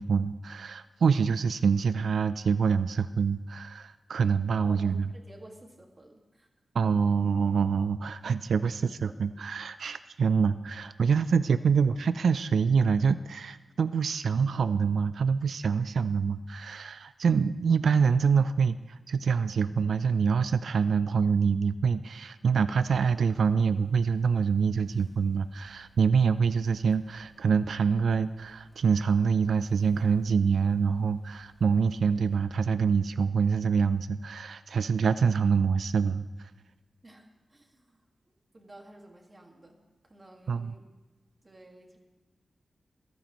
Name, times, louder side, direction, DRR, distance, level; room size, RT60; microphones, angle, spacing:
voice 1, 0.0-5.1 6.7-36.5 40.5-40.7, right 6 dB, 90° right, 12 dB, 0.3 m, -26 dB
voice 2, 4.6-6.5 9.1-9.2 37.0-38.0 38.5-39.8 40.0-40.8 41.4-42.0, right 1 dB, 25° right, 1 dB, 1.8 m, -52 dB
sound 1, 22.7-32.4, right 5 dB, ahead, 1.4 m, -62 dB
27.0 x 9.1 x 3.0 m, 1.2 s
wide cardioid pair, 160°, 0 cm